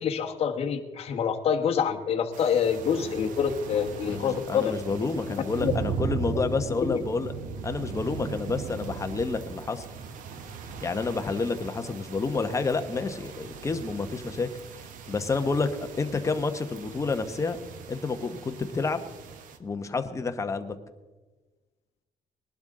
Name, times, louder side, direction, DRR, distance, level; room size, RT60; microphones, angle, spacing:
voice 1, 0.0-4.7 5.6-5.7 6.8-7.0, left 7 dB, 45° left, 3 dB, 1.2 m, -26 dB
sound 1, 2.3-19.6, right 5 dB, 75° right, 1.1 m, -38 dB
voice 2, 4.1-7.3 7.6-9.8 10.8-14.5 15.1-17.6 17.9-19.0 19.6-20.7, left 4 dB, 20° left, 7 dB, 0.9 m, -29 dB
20.0 x 11.5 x 3.7 m, 1.2 s
cardioid pair, 135°, 14 cm